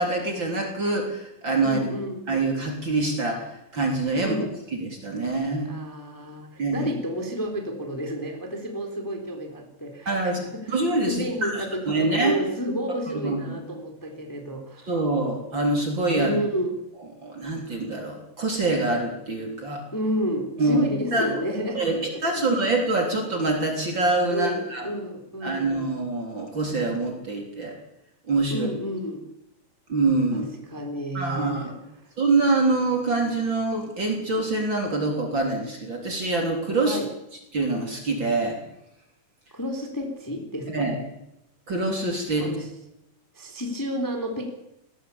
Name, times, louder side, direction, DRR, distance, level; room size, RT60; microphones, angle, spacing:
voice 1, 0.0-1.8 2.3-4.4 4.7-5.7 6.6-6.9 10.1-10.4 10.7-12.3 13.1-13.6 14.9-16.3 17.2-19.8 20.6-21.4 21.7-24.9 25.4-27.8 28.3-28.7 29.9-30.5 31.1-31.7 32.2-37.0 37.5-38.6 40.7-40.9 41.7-42.5, right 2 dB, 35° right, 2 dB, 4.0 m, -25 dB
voice 2, 1.6-2.2 4.2-4.5 5.7-10.8 11.0-14.9 16.1-16.7 19.9-22.4 24.3-25.7 28.5-29.2 30.3-30.4 30.7-31.7 32.0-32.1 36.8-37.1 39.5-40.9 42.4-42.7 43.3-44.5, equal, 5° left, 3 dB, 3.1 m, -31 dB
20.5 x 16.0 x 8.6 m, 0.85 s
omnidirectional pair, 4.1 m